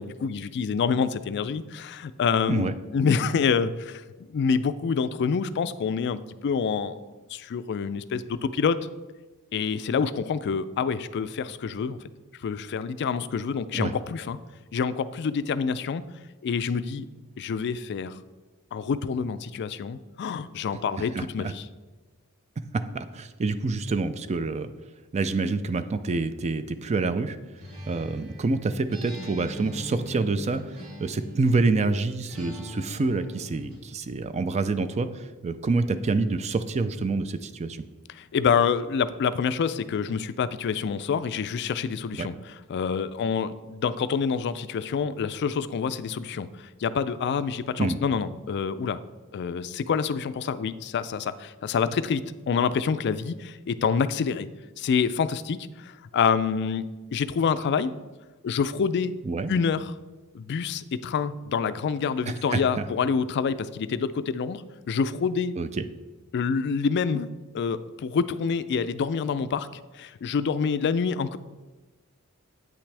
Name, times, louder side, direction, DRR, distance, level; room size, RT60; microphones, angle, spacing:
voice 1, 0.0-7.0 7.3-8.8 9.5-12.0 12.4-14.4 14.7-16.0 16.4-17.1 17.4-18.2 18.7-21.7 38.1-49.0 49.3-54.5 54.8-57.9 58.4-59.1 59.5-59.9 60.3-65.5 66.3-67.3 67.5-69.7 69.9-71.4, left 6 dB, 50° left, 14 dB, 0.3 m, -27 dB
voice 2, 21.0-21.5 22.7-24.7 25.1-27.4 27.9-37.8 42.2-42.3 47.8-48.0 59.2-59.5 62.5-62.8 65.6-65.9, right 3 dB, 30° right, 11 dB, 0.4 m, -27 dB
Acoustic guitar, 27.6-31.7 32.3-33.9, equal, 75° right, 2.7 m, -41 dB
8.9 x 6.0 x 3.3 m, 1.2 s
head